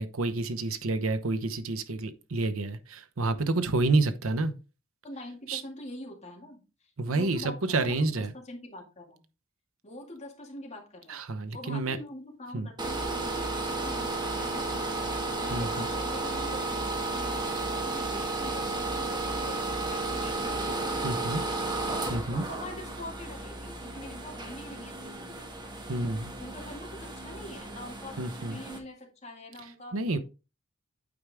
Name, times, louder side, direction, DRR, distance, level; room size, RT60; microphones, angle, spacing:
voice 1, 0.0-4.5 5.5-5.6 7.0-8.3 11.1-12.0 12.5-12.7 15.5-15.9 21.0-21.4 22.1-22.4 25.9-26.3 28.2-28.6 29.9-30.2, right 2 dB, 80° right, 0.9 m, -29 dB
voice 2, 5.0-6.6 7.1-9.2 9.8-11.2 11.5-15.0 15.3-21.6 22.3-25.5 26.4-28.2 28.5-30.2, left 1 dB, 30° left, 2.2 m, -44 dB
sound 1, 12.8-28.8, right 2 dB, 20° right, 1.3 m, -33 dB
8.7 x 4.7 x 3.5 m
head